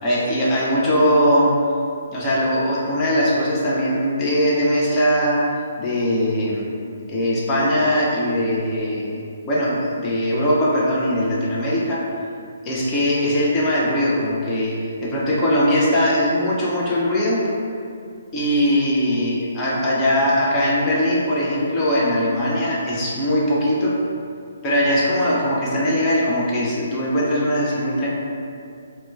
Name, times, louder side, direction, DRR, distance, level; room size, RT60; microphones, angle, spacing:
voice 1, 0.0-1.5 2.1-5.4 5.8-6.7 7.1-9.2 9.5-12.0 12.6-17.5 18.3-24.0 24.6-28.1, equal, 20° left, -6 dB, 0.5 m, -20 dB
3.0 x 2.1 x 3.2 m, 2.4 s
figure-of-eight pair, 130°, 0 cm